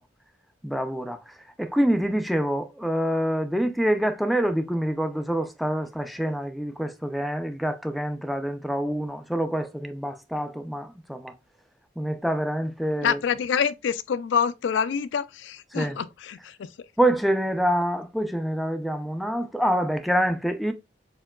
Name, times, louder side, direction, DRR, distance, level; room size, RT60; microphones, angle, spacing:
voice 1, 0.6-1.3 1.6-11.3 12.0-13.2 15.7-16.0 17.0-20.7, equal, ahead, 0.3 m, -26 dB
voice 2, 13.0-16.7, left 7 dB, 75° left, 0.3 m, -26 dB
4.4 x 3.8 x 2.2 m
head